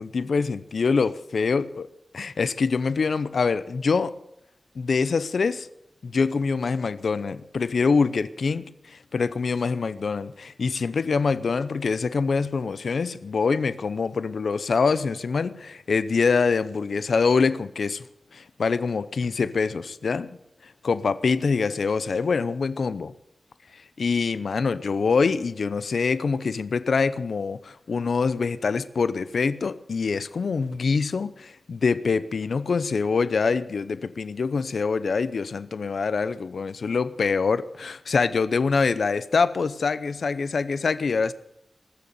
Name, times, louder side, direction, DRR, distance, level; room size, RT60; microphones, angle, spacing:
voice 1, 0.0-1.9 2.1-4.1 4.8-5.7 6.0-18.1 18.3-20.3 20.6-23.1 24.0-41.3, left 5 dB, 85° left, 0.7 m, -25 dB
20.5 x 6.8 x 9.4 m
cardioid pair, 50°, 0 cm